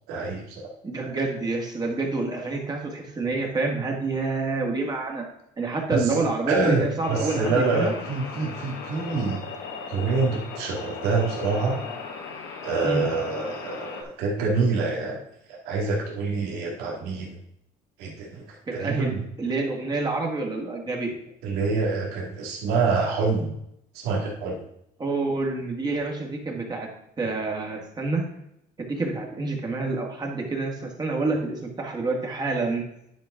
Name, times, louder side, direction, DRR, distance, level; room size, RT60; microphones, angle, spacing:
voice 1, 0.1-0.6 5.9-9.4 9.9-11.8 12.6-15.2 15.5-17.4 18.0-18.4 18.7-19.2 21.4-23.5 23.9-24.6, right 4 dB, 90° right, -2 dB, 2.1 m, -26 dB
voice 2, 0.8-5.2 5.6-7.9 12.8-13.0 18.7-21.1 25.0-26.9 27.2-28.2 28.8-32.8, right 3 dB, 25° right, 0 dB, 2.0 m, -28 dB
sound 1, 7.0-14.0, left 5 dB, 85° left, 1.6 m, -37 dB
10.5 x 5.3 x 3.7 m, 0.77 s
cardioid pair, 115°, 16 cm